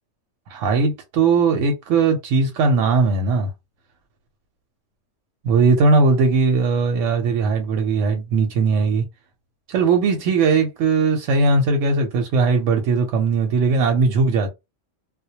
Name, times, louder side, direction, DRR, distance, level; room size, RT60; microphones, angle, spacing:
voice 1, 0.5-3.5 5.4-9.0 9.7-14.5, right 4 dB, 85° right, 0.9 m, -19 dB
2.1 x 2.1 x 2.8 m
omnidirectional pair, 1.3 m